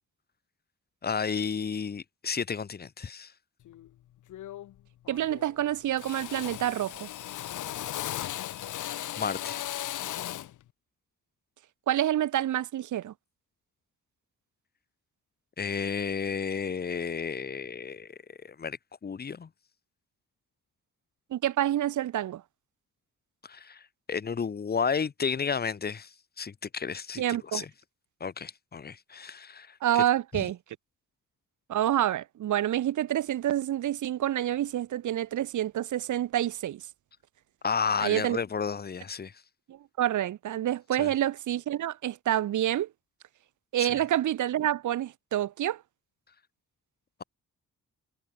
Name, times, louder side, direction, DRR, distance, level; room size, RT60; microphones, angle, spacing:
voice 1, 1.0-3.3 9.2-9.6 15.6-18.1 18.4-18.8 19.0-19.5 23.5-23.8 24.1-26.1 26.4-27.2 27.5-27.7 28.2-30.0 37.6-39.3 41.0-41.1 43.8-43.9, left 6 dB, 30° left, 2.7 m, -32 dB
Drill, 3.7-3.9 4.3-4.8 5.1-5.6 6.0-10.6, left 13 dB, 85° left, 1.9 m, -37 dB
voice 2, 5.1-7.1 11.9-13.1 21.3-22.4 27.2-27.6 29.8-30.6 31.7-36.8 38.0-38.4 39.7-42.9 43.7-45.8, right 12 dB, 80° right, 2.8 m, -28 dB
wide cardioid pair, 160°, 30 cm